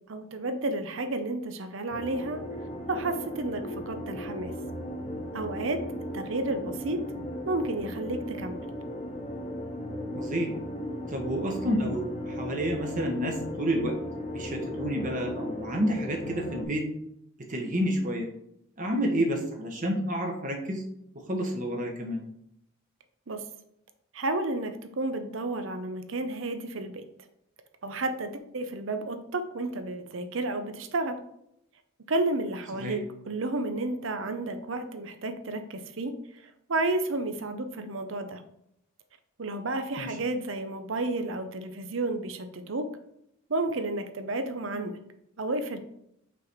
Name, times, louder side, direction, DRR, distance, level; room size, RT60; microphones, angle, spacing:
voice 1, 0.1-2.4 2.9-4.5 5.3-5.8 6.1-7.0 7.5-8.6 23.3-23.4 24.1-27.0 27.8-31.2 32.1-36.1 36.7-38.4 39.4-42.9 43.5-44.9 45.4-45.8, right 2 dB, 65° right, 8 dB, 0.7 m, -31 dB
sound 1, 1.9-16.6, left 1 dB, 30° left, 1.0 m, -36 dB
voice 2, 10.1-10.5 11.1-13.9 14.3-16.8 17.5-18.3 18.8-20.8 21.3-22.2 32.8-33.0 40.0-40.2, equal, 40° right, 2 dB, 1.2 m, -29 dB
5.9 x 4.0 x 4.6 m, 0.77 s
head